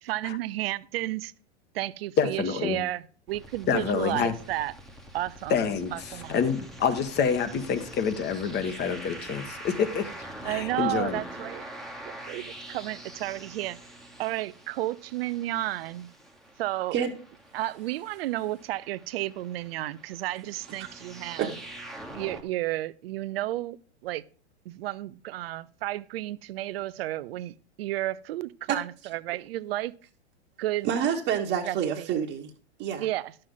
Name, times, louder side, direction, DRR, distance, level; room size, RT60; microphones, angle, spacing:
voice 1, 0.0-1.3 1.7-4.7 5.1-5.7 5.9-6.4 10.4-11.6 12.1-13.8 14.2-16.1 16.6-17.0 17.5-21.5 22.1-23.8 24.0-24.2 24.7-29.9 30.6-30.9 31.6-32.1 33.0-33.3, right 16 dB, 60° right, 0.6 m, -32 dB
voice 2, 2.2-2.8 3.7-4.3 5.5-10.1 10.4-11.2, left 6 dB, 30° left, 1.5 m, -27 dB
sound 1, 3.3-22.4, right 1 dB, ahead, 1.3 m, -44 dB
voice 3, 30.8-32.5 32.8-33.1, right 8 dB, 40° right, 1.5 m, -27 dB
11.0 x 7.7 x 3.9 m
hypercardioid pair, 110°, 34 cm